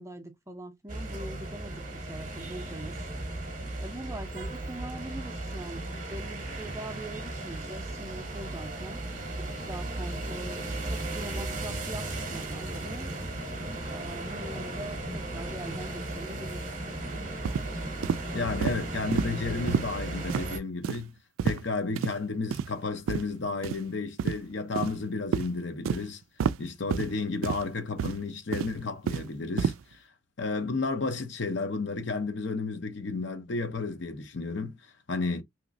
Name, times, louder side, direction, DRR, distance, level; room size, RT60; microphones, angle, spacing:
voice 1, 0.0-3.0 3.8-9.0 9.3-10.6 10.9-13.1 13.9-16.7, right 1 dB, 15° right, 0.5 m, -42 dB
sound 1, 0.9-20.6, right 2 dB, 40° right, 0.8 m, -36 dB
sound 2, 17.4-17.7 18.0-18.2 18.6-18.8 19.1-19.3 19.7-19.9 20.3-20.4 20.8-21.0 21.4-21.6 22.0-22.1 22.5-22.7 23.1-23.2 23.6-23.8 24.2-24.4 24.8-25.0 25.3-25.5 25.9-26.0 26.4-26.6 26.9-27.1 27.4-27.6 28.0-28.2 28.5-29.3 29.6-29.8, right 7 dB, 80° right, 0.3 m, -28 dB
voice 2, 18.3-21.1 21.4-26.2 26.6-30.0 30.4-34.8 35.1-35.4, left 3 dB, 60° left, 0.7 m, -32 dB
3.0 x 2.9 x 2.6 m
head